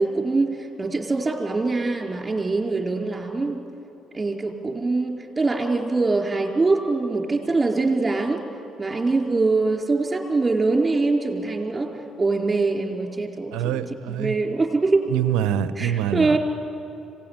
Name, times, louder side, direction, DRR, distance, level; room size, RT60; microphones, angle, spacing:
voice 1, 0.0-3.6 4.1-8.4 8.8-11.9 12.2-13.7 14.2-15.1 15.8-16.4, right 3 dB, 25° right, 2 dB, 4.5 m, -23 dB
voice 2, 13.5-14.4 15.1-16.4, right 10 dB, 75° right, 13 dB, 0.9 m, -25 dB
25.5 x 18.0 x 9.8 m, 2.9 s
hypercardioid pair, 50°, 0 cm